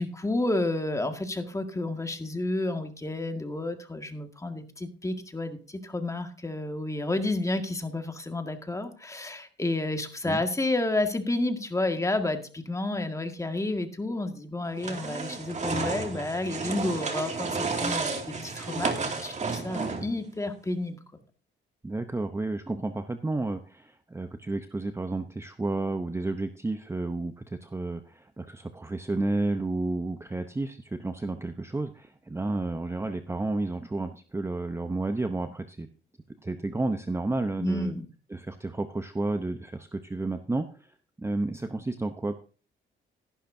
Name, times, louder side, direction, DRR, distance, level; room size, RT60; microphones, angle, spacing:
voice 1, 0.0-21.2 37.6-38.0, left 2 dB, 15° left, 6 dB, 1.9 m, -30 dB
sound 1, 14.8-20.2, right 4 dB, 35° right, 2.4 m, -32 dB
voice 2, 21.8-35.9 36.4-37.9 38.3-40.9 41.2-42.4, right 2 dB, 15° right, 8 dB, 0.8 m, -31 dB
14.5 x 11.5 x 2.7 m, 0.37 s
cardioid pair, 90°, 20 cm